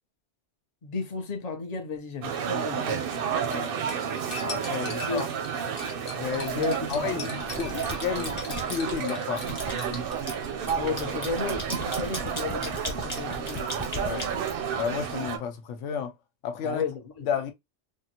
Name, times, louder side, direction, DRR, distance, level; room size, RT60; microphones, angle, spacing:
voice 1, 0.8-3.3 4.9-5.3 6.5-7.4 10.8-13.7 16.6-17.3, left 4 dB, 40° left, 0.7 m, -34 dB
sound 1, 2.2-15.4, right 7 dB, 60° right, 0.6 m, -31 dB
Cutlery silverware, 3.9-10.2, left 3 dB, 65° left, 1.2 m, -42 dB
voice 2, 4.4-5.3 6.1-9.4 14.0-14.3 14.7-16.1 16.4-16.8 17.2-17.5, left 7 dB, 85° left, 0.9 m, -32 dB
sound 2, 6.5-7.0 7.4-9.0 9.4-15.1, left 1 dB, 25° left, 1.3 m, -37 dB
3.6 x 2.1 x 2.8 m
omnidirectional pair, 1.2 m